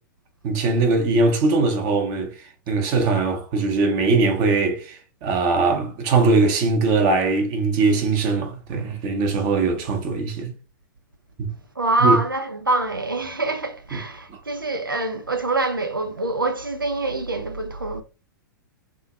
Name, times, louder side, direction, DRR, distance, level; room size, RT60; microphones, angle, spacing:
voice 1, 0.4-2.4 2.7-10.5 11.4-11.5 12.0-12.2 13.9-14.0 14.3-14.4, right 3 dB, 35° right, 1.1 m, -21 dB
voice 2, 11.8-18.0, right 2 dB, 85° right, 0.7 m, -25 dB
5.0 x 3.7 x 2.3 m
figure-of-eight pair, 105°, 11 cm